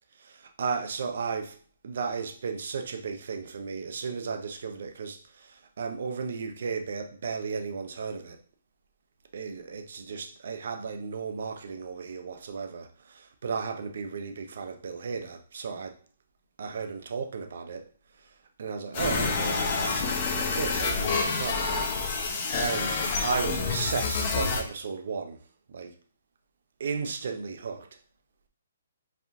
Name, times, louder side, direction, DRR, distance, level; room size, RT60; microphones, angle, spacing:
voice 1, 0.2-1.6 1.8-8.4 9.3-15.9 16.6-17.8 18.6-19.9 20.3-22.3 22.6-25.4 25.7-25.9 26.8-27.9, right 5 dB, 60° right, 0.7 m, -34 dB
sound 1, 18.9-24.6, left 4 dB, 35° left, 0.9 m, -28 dB
4.9 x 3.6 x 2.7 m
hypercardioid pair, 160°, 0 cm